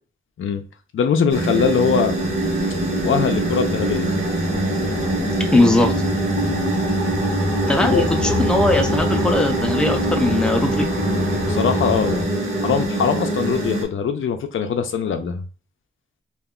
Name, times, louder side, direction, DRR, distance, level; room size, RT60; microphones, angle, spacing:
voice 1, 0.9-2.2 3.0-4.1 6.4-6.6 7.8-8.4 11.4-12.3 12.6-15.4, left 7 dB, 80° left, 0.4 m, -22 dB
sound 1, 1.3-13.8, right 1 dB, 35° right, 1.2 m, -23 dB
sound 2, 2.0-12.2, left 1 dB, 80° right, 1.2 m, -29 dB
voice 2, 5.5-5.9 7.7-10.9, left 2 dB, 5° left, 0.5 m, -19 dB
2.4 x 2.1 x 3.6 m
wide cardioid pair, 110°, 20 cm